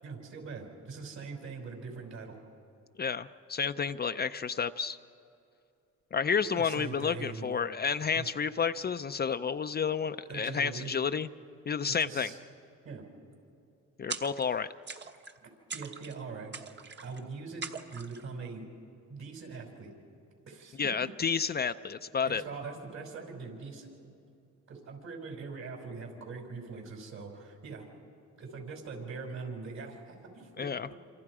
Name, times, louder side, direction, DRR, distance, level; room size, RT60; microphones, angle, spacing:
voice 1, 0.0-2.4 6.4-7.5 8.1-8.3 10.3-10.9 12.0-12.4 12.8-13.1 15.4-16.5 17.0-17.6 17.9-18.6 19.1-19.9 20.5-21.1 22.2-23.9 24.7-27.9 28.4-31.0, right 4 dB, 65° right, 1 dB, 5.7 m, -42 dB
voice 2, 3.0-5.0 6.1-11.3 11.7-12.3 14.0-14.7 20.8-22.4 30.6-30.9, left 6 dB, 35° left, 10 dB, 0.5 m, -31 dB
sound 1, 14.1-14.6 14.9-15.4 15.7-16.2 16.5-17.2 17.6-18.2, right 4 dB, 35° right, 1.3 m, -41 dB
27.0 x 27.0 x 4.9 m, 2.6 s
cardioid pair, 90°, 30 cm